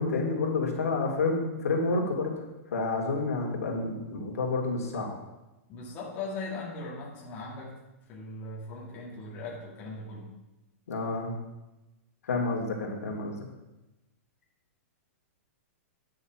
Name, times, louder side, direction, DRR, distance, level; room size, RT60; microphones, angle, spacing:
voice 1, 0.0-2.3 2.7-5.1 10.9-11.3 12.3-13.4, left 3 dB, 85° left, -1 dB, 2.8 m, -29 dB
voice 2, 5.7-7.7 8.1-10.3, left 3 dB, 25° left, -4 dB, 2.0 m, -39 dB
9.9 x 6.5 x 6.0 m, 1.0 s
hypercardioid pair, 165°, 8 cm